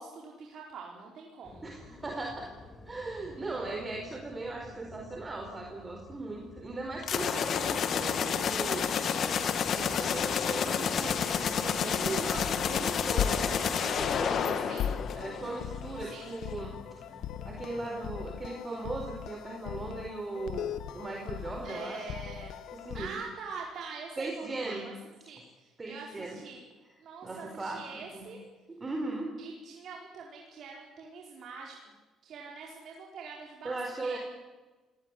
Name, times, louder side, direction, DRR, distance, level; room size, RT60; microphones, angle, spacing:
voice 1, 0.0-1.7 14.7-15.0 16.0-16.3 21.6-22.5 22.9-24.9 25.2-26.6 27.0-28.4 29.4-31.8 32.2-33.8 34.0-34.2, right 5 dB, 60° right, -1 dB, 4.5 m, -44 dB
sound 1, 1.4-18.0, left 2 dB, 25° left, 4.5 m, -51 dB
voice 2, 1.6-2.5 2.8-9.2 9.7-17.0 17.4-22.0 22.7-23.1 24.2-24.9 25.8-26.4 27.2-27.8 28.1-28.3 28.8-29.3 33.6-34.2, right 2 dB, 25° right, 2 dB, 4.5 m, -38 dB
sound 2, 7.0-15.7, left 7 dB, 55° left, 2.2 m, -30 dB
sound 3, 12.0-23.1, left 9 dB, 70° left, 1.2 m, -39 dB
25.0 x 18.5 x 9.9 m, 1.2 s
supercardioid pair, 85°, 0 cm